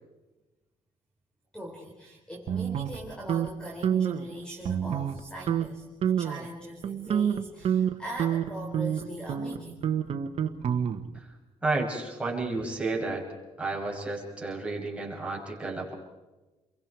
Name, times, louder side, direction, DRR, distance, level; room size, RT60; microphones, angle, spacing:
voice 1, 1.5-9.9 11.9-12.0 12.5-12.7 13.7-13.8, equal, 10° left, -1 dB, 4.1 m, -41 dB
sound 1, 2.5-3.5 3.8-4.2 4.6-5.2 5.5-5.7 6.0-6.4 6.8-11.2, right 9 dB, 60° right, 1.4 m, -28 dB
voice 2, 11.6-15.9, right 3 dB, 10° right, -2 dB, 6.2 m, -32 dB
29.0 x 23.0 x 4.7 m, 1.1 s
cardioid pair, 110°, 12 cm